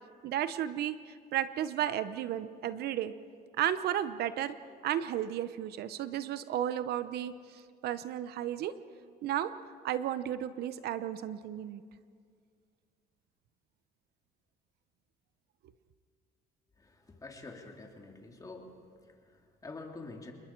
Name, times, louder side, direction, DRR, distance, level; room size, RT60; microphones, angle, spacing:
voice 1, 0.2-3.1 3.6-4.6 4.8-7.3 7.8-8.7 9.2-9.5 9.8-11.8, right 11 dB, 70° right, 13 dB, 0.8 m, -33 dB
voice 2, 16.8-18.8 19.0-20.3, left 3 dB, 20° left, 1 dB, 3.0 m, -47 dB
29.0 x 21.0 x 4.6 m, 2.1 s
cardioid pair, 110°, 17 cm